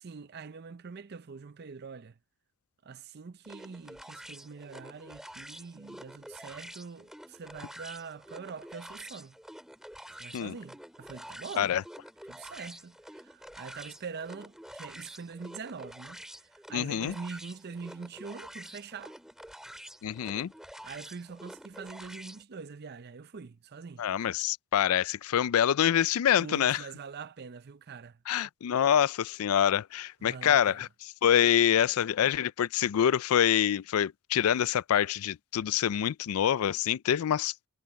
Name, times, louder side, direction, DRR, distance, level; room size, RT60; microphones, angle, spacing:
voice 1, 0.0-2.2 2.8-9.4 10.1-11.8 12.3-19.2 20.8-24.4 26.4-28.2 30.2-30.9, right 5 dB, 45° right, 0.5 m, -44 dB
sound 1, 3.4-22.4, equal, ahead, 2.8 m, -48 dB
voice 2, 16.7-17.1 20.0-20.5 24.0-26.8 28.3-30.9 31.2-37.5, left 9 dB, 75° left, 0.4 m, -26 dB
head